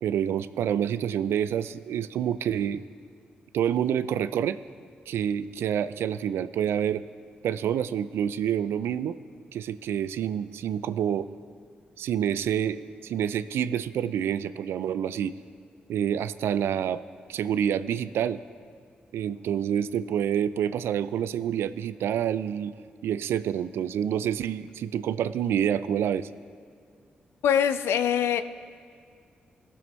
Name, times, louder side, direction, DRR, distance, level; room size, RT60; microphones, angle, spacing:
voice 1, 0.0-2.8 3.5-4.6 5.1-7.0 7.4-9.2 9.5-11.3 12.0-15.3 15.9-17.0 17.3-18.4 19.1-22.7 23.0-26.3, right 9 dB, 75° right, 14 dB, 0.3 m, -27 dB
voice 2, 27.4-28.4, left 8 dB, 80° left, 11 dB, 0.4 m, -23 dB
18.0 x 7.0 x 3.1 m, 2.2 s
supercardioid pair, 45°, 4 cm